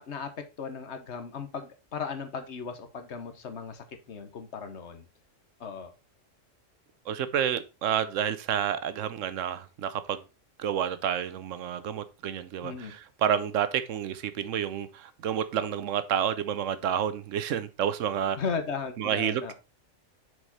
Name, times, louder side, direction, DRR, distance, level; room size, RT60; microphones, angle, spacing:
voice 1, 0.0-5.1 5.6-5.9 12.6-12.9 18.4-19.5, left 5 dB, 60° left, 1.2 m, -36 dB
voice 2, 7.1-10.2 10.6-18.4 19.0-19.5, right 9 dB, 75° right, 1.1 m, -29 dB
6.4 x 4.8 x 4.0 m
omnidirectional pair, 1.3 m